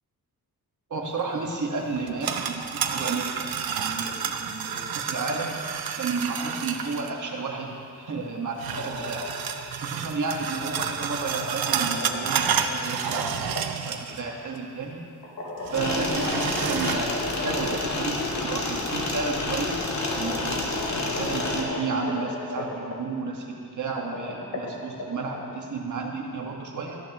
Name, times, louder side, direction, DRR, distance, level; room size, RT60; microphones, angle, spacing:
voice 1, 0.9-5.6 5.9-9.3 9.8-13.5 13.8-15.0 15.7-17.1 17.4-20.7 21.2-27.0, right 4 dB, 55° right, 0 dB, 1.6 m, -32 dB
sound 1, 2.0-7.1 8.6-14.3 14.6-14.7 15.6-17.0, right 7 dB, 80° right, 0.8 m, -30 dB
sound 2, 8.5-9.6 10.8-13.6 15.2-18.0 18.3-18.4 19.5-19.6 20.0-22.9 23.8-25.5, left 2 dB, 70° left, 2.5 m, -36 dB
sound 3, 15.7-21.6, left 2 dB, 50° left, 1.7 m, -29 dB
17.5 x 14.0 x 3.0 m, 2.4 s
wide cardioid pair, 150°, 36 cm